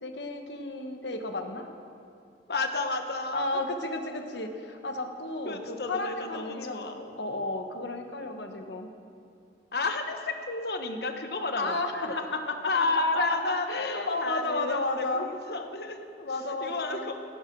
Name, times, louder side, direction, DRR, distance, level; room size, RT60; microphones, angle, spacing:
voice 1, 0.0-1.7 3.3-8.9 11.6-15.3 16.2-17.1, left 2 dB, 80° left, 5 dB, 1.3 m, -33 dB
voice 2, 2.5-3.5 5.4-7.1 9.7-11.8 12.7-16.0 16.6-17.2, left 3 dB, 65° left, 6 dB, 1.1 m, -31 dB
17.0 x 12.0 x 4.7 m, 2.6 s
head